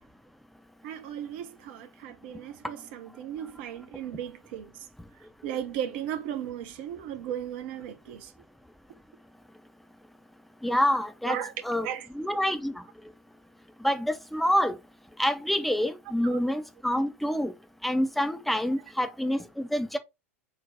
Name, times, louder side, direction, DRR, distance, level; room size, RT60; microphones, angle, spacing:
voice 1, 0.8-4.9 5.4-8.3 11.3-11.5 11.8-12.1 16.2-16.4, right 10 dB, 50° right, 0.5 m, -36 dB
voice 2, 10.6-11.4 11.6-11.9 12.1-12.8 13.8-14.8 15.2-17.5 17.8-20.0, equal, ahead, 0.4 m, -27 dB
4.0 x 2.0 x 3.6 m
figure-of-eight pair, 85°, 8 cm